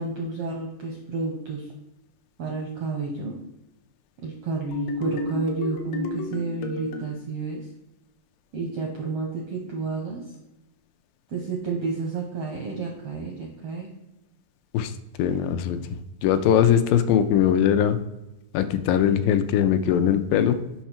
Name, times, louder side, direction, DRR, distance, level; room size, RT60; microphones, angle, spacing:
voice 1, 0.0-1.6 2.4-3.4 4.2-7.6 8.5-10.2 11.3-13.9, right 3 dB, 75° right, 0 dB, 1.4 m, -30 dB
sound 1, 4.7-7.1, left 3 dB, 65° left, 1.8 m, -32 dB
voice 2, 15.2-15.8 16.2-18.0 18.5-20.6, left 9 dB, 85° left, 10 dB, 2.2 m, -20 dB
6.4 x 5.6 x 4.3 m, 0.93 s
omnidirectional pair, 4.0 m